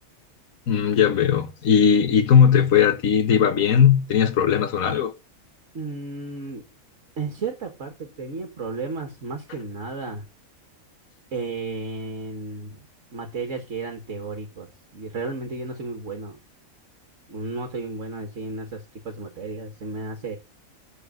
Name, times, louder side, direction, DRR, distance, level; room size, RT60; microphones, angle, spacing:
voice 1, 0.7-5.1, left 8 dB, 75° left, 1.5 m, -18 dB
voice 2, 5.7-6.7 7.2-10.3 11.3-12.8 13.1-16.4 17.3-20.4, right 3 dB, 60° right, 2.1 m, -33 dB
9.9 x 4.9 x 7.7 m
omnidirectional pair, 1.4 m